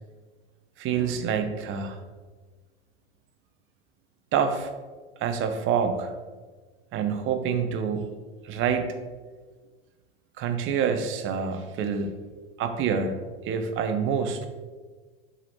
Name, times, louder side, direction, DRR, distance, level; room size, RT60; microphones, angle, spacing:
voice 1, 0.8-2.0 4.3-4.7 5.2-6.1 6.9-8.1 8.4-8.9 10.4-12.1 12.6-13.2 13.4-14.5, right 6 dB, 40° right, 8 dB, 0.7 m, -27 dB
6.0 x 4.1 x 4.2 m, 1.4 s
hypercardioid pair, 95°, 33 cm